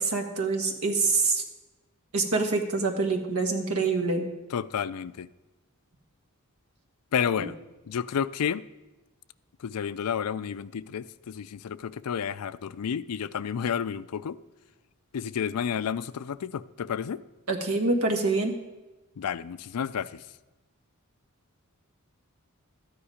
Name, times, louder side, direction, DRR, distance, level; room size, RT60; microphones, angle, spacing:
voice 1, 0.0-1.4 2.1-4.3 7.4-7.5 17.5-18.5, right 3 dB, 80° right, 3 dB, 1.6 m, -26 dB
voice 2, 4.5-5.3 7.1-7.6 7.9-8.6 9.6-14.4 15.1-17.2 19.2-20.2, left 7 dB, 90° left, 16 dB, 0.4 m, -31 dB
13.5 x 9.9 x 5.0 m, 1.1 s
head